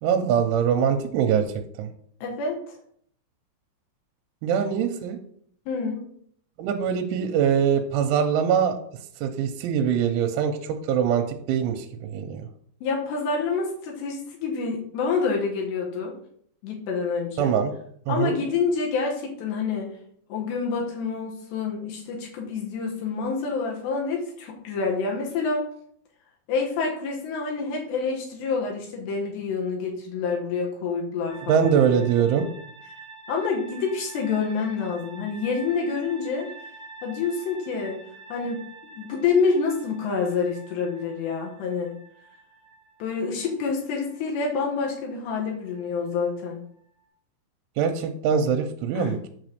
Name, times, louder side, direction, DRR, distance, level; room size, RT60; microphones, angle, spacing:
voice 1, 0.0-1.4 1.8-1.9 4.4-5.2 6.6-8.8 9.2-12.5 17.4-17.7 18.1-18.3 31.5-32.5 47.8-49.3, right 7 dB, 90° right, 5 dB, 3.1 m, -23 dB
voice 2, 2.2-2.6 5.7-6.0 12.8-16.1 16.6-17.5 18.1-19.9 20.3-25.7 26.5-32.0 33.3-36.5 37.0-38.0 38.3-38.6 39.0-41.9 43.0-46.6 49.0-49.1, left 5 dB, 70° left, 0 dB, 3.4 m, -27 dB
sound 1, 31.3-47.0, right 3 dB, 30° left, 2.1 m, -47 dB
7.9 x 4.1 x 6.6 m, 0.63 s
omnidirectional pair, 5.5 m